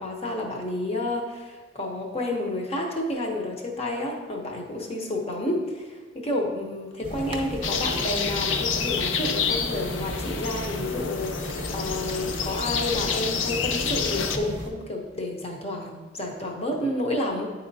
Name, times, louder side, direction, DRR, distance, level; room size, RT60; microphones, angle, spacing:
voice 1, 0.0-11.4 11.7-17.5, left 1 dB, 35° left, 0 dB, 0.9 m, -30 dB
sound 1, 7.0-14.7, right 1 dB, 30° right, 0.8 m, -35 dB
sound 2, 7.6-14.4, left 6 dB, 85° left, 0.5 m, -28 dB
9.3 x 4.2 x 2.7 m, 1.3 s
head